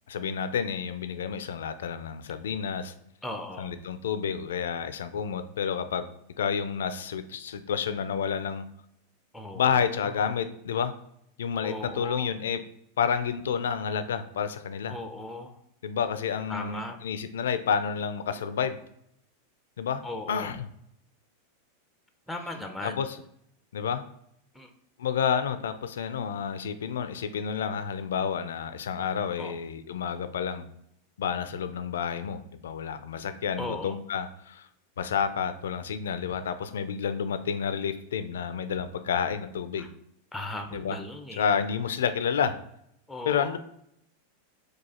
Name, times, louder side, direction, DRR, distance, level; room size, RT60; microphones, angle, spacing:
voice 1, 0.1-2.9 3.6-8.6 9.6-10.9 11.4-12.6 13.0-15.0 15.8-18.8 19.8-20.0 20.3-20.7 22.8-23.2 23.7-24.0 25.0-30.7 31.2-34.7 35.0-39.9 40.7-41.0 41.4-42.6 43.3-43.6, left 7 dB, 85° left, 11 dB, 0.4 m, -30 dB
voice 2, 3.2-3.7 9.3-10.0 11.6-12.3 14.9-15.6 16.5-17.0 20.0-20.5 22.3-23.0 24.5-24.7 29.4-29.6 33.6-34.0 39.8-39.9 40.3-41.5 43.1-43.6, left 2 dB, 5° left, 5 dB, 0.6 m, -37 dB
4.7 x 2.4 x 4.2 m, 0.73 s
hypercardioid pair, 115°, 0 cm